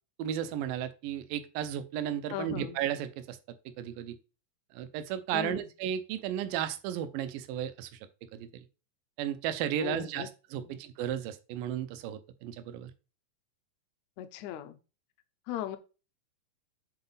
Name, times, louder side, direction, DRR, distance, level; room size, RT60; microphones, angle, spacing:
voice 1, 0.2-3.4 3.8-4.2 4.7-8.0 8.3-8.7 9.2-12.9, right 10 dB, 85° right, 11 dB, 2.3 m, -34 dB
voice 2, 2.3-2.8 5.3-5.7 9.8-10.3 14.2-14.8 15.5-15.8, left 12 dB, 80° left, 10 dB, 1.7 m, -37 dB
7.6 x 3.9 x 3.9 m, 0.33 s
omnidirectional pair, 3.8 m